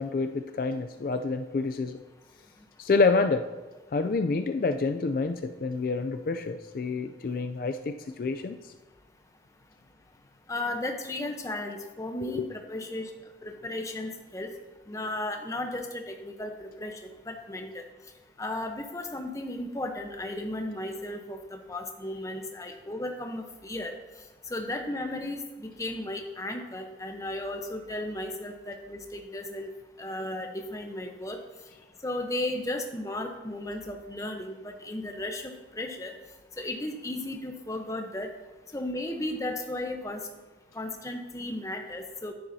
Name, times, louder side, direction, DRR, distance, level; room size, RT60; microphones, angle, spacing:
voice 1, 0.0-2.0 2.8-3.5 3.9-8.7 12.2-12.5, left 4 dB, 50° left, 8 dB, 0.3 m, -28 dB
voice 2, 10.5-13.1 13.4-14.5 14.9-17.8 18.4-23.9 24.5-29.7 30.0-31.4 32.0-36.1 36.6-38.3 38.7-40.2 40.7-42.3, left 1 dB, 20° left, 4 dB, 0.8 m, -35 dB
10.5 x 10.0 x 2.7 m, 1.2 s
head